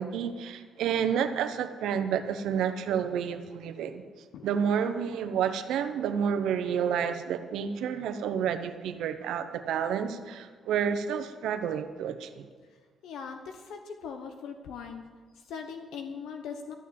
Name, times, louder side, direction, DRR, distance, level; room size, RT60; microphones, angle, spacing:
voice 1, 0.0-4.0 4.4-12.4, right 8 dB, 85° right, 9 dB, 1.0 m, -30 dB
voice 2, 13.0-15.1 15.3-16.7, left 6 dB, 80° left, 5 dB, 1.1 m, -40 dB
13.5 x 7.3 x 8.6 m, 1.5 s
cardioid pair, 90°, 0 cm